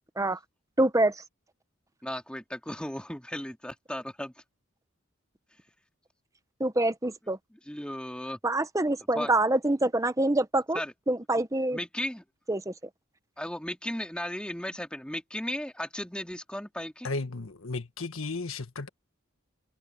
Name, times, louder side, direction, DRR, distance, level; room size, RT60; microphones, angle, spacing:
voice 1, 0.8-1.2 6.6-7.4 8.4-10.8 11.1-11.8 12.5-12.7, right 2 dB, 15° right, 0.9 m, -25 dB
voice 2, 2.0-4.3 7.7-8.4 9.1-9.3 10.7-10.9 11.7-12.2 13.4-17.1, left 1 dB, 5° left, 2.1 m, -35 dB
voice 3, 17.0-18.9, left 3 dB, 90° left, 1.5 m, -34 dB
head